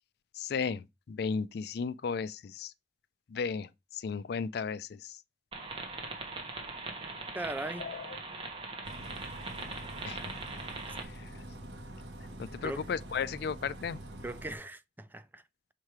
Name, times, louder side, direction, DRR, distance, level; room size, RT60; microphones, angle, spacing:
voice 1, 0.4-2.7 3.3-5.2 7.8-8.2 10.0-10.3 11.0-11.4 12.4-14.0, left 5 dB, 65° left, 0.4 m, -35 dB
sound 1, 5.5-11.0, right 3 dB, 30° right, 1.3 m, -41 dB
voice 2, 7.3-7.9 12.6-12.9 14.2-15.4, right 2 dB, 10° right, 0.4 m, -39 dB
Bus, 8.8-14.6, right 1 dB, 75° right, 1.2 m, -45 dB
6.5 x 3.1 x 4.8 m
head